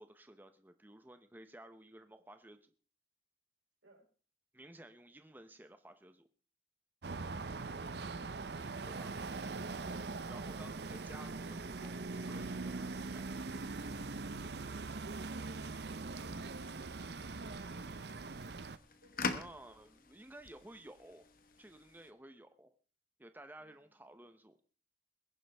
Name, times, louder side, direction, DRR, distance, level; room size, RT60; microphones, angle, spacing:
voice 1, 0.0-2.7 4.5-6.3 8.8-9.1 10.3-13.4 19.3-21.3 21.6-22.7 23.2-24.6, right 1 dB, 10° right, 8 dB, 0.7 m, -55 dB
sound 1, 7.0-18.8, right 3 dB, 60° right, 0.7 m, -42 dB
voice 2, 14.7-15.4 19.0-19.5 23.5-23.9, right 2 dB, 90° right, 1 dB, 5.2 m, -65 dB
sound 2, 15.6-22.1, left 4 dB, 50° left, 1.3 m, -46 dB
21.5 x 11.0 x 3.4 m, 0.38 s
head